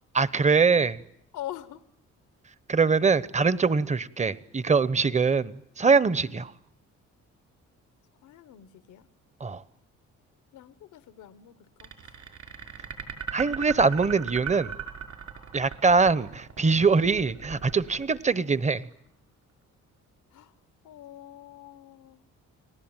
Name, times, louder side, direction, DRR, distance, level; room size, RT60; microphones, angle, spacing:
voice 1, 0.2-1.0 2.7-6.5 9.4-9.6 13.3-14.7 15.5-18.8, right 4 dB, 25° right, 18 dB, 0.9 m, -23 dB
voice 2, 1.3-1.8 5.0-5.2 6.2-6.4 8.2-9.1 10.5-12.2 20.3-20.5 20.8-22.2, left 13 dB, 85° left, 14 dB, 1.2 m, -44 dB
sound 1, 11.8-18.9, right 9 dB, 65° right, 5.7 m, -37 dB
30.0 x 19.5 x 9.0 m, 0.76 s
cardioid pair, 90°, 30 cm